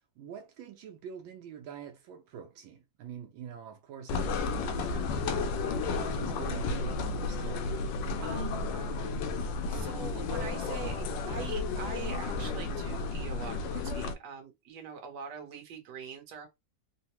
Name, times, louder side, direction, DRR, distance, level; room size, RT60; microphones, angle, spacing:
voice 1, 0.2-9.5, right 8 dB, 85° right, 1.4 m, -46 dB
sound 1, 4.1-14.1, left 3 dB, 75° left, 1.2 m, -32 dB
voice 2, 8.2-8.7 9.7-11.0 11.3-16.5, right 6 dB, 60° right, 1.4 m, -43 dB
3.7 x 2.1 x 2.9 m
omnidirectional pair, 2.1 m